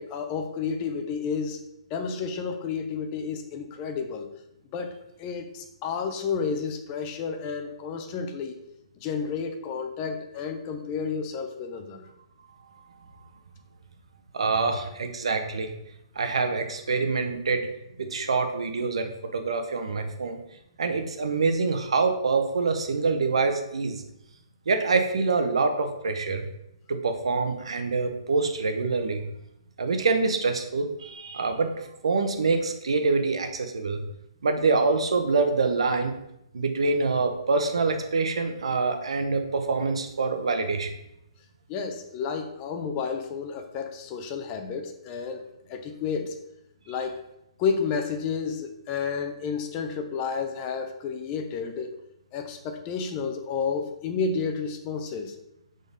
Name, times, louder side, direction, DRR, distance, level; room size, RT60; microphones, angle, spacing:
voice 1, 0.0-1.6 1.9-4.3 4.7-8.6 9.0-12.1 41.7-46.4 46.9-47.2 47.6-51.9 52.3-55.3, left 5 dB, 30° left, 6 dB, 0.7 m, -31 dB
voice 2, 14.3-15.7 16.1-17.7 18.0-20.4 20.8-24.0 24.7-26.4 26.9-29.2 29.8-34.0 34.4-36.1 36.5-40.9, right 4 dB, 85° right, 6 dB, 1.0 m, -25 dB
6.9 x 3.9 x 4.0 m, 0.81 s
hypercardioid pair, 155°, 3 cm